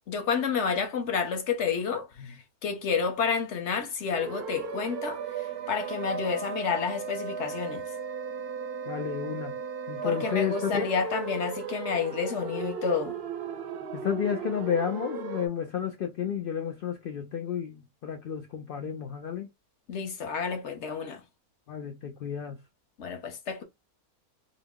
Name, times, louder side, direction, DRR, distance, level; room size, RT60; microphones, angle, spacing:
voice 1, 0.1-7.9 10.0-13.2 19.9-21.2 23.0-23.6, left 6 dB, 55° left, 1.0 m, -30 dB
sound 1, 4.1-15.5, right 6 dB, 60° right, 0.6 m, -36 dB
voice 2, 8.9-9.5 9.9-10.9 13.9-19.5 21.7-22.6, left 8 dB, 90° left, 0.4 m, -31 dB
3.8 x 2.0 x 3.6 m
omnidirectional pair, 1.6 m